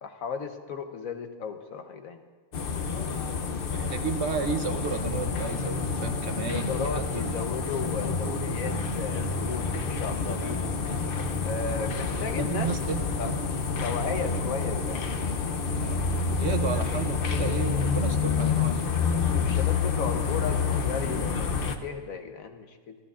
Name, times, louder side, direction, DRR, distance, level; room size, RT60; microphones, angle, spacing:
voice 1, 0.0-2.2 6.5-10.6 11.4-12.7 13.2-13.3 13.8-15.1 19.3-21.5 21.8-23.0, left 6 dB, 80° left, 6 dB, 1.4 m, -35 dB
sound 1, 2.5-21.8, left 5 dB, 50° left, 0.8 m, -28 dB
voice 2, 3.7-7.3 10.9-11.0 12.2-13.3 15.8-16.1 16.4-18.9, right 6 dB, 60° right, 9 dB, 0.9 m, -33 dB
29.5 x 12.5 x 2.4 m, 1.5 s
omnidirectional pair, 1.4 m